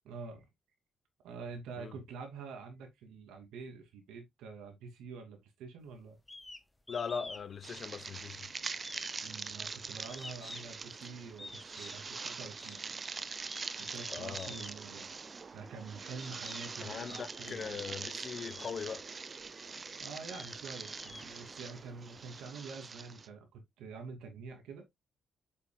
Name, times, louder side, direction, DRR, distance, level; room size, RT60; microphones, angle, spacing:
voice 1, 0.0-0.5 1.2-6.2 9.2-12.9 13.7-15.1 15.5-17.8 20.0-24.8, right 4 dB, 90° right, 2.7 m, -47 dB
sound 1, 6.3-6.6 6.9-7.5 7.8-8.4 8.8-10.8 11.4-12.1 12.6-12.8 13.4-14.8 15.6-15.7 16.2-16.7 17.1-17.7 18.3-18.8 19.4-19.5 20.0-21.8, left 2 dB, 15° left, 1.1 m, -49 dB
voice 2, 6.9-8.5 14.1-14.5 16.8-19.0, left 6 dB, 50° left, 1.0 m, -40 dB
sound 2, 7.6-23.3, right 4 dB, 35° right, 0.7 m, -43 dB
7.9 x 7.1 x 2.3 m
cardioid pair, 90°, 0 cm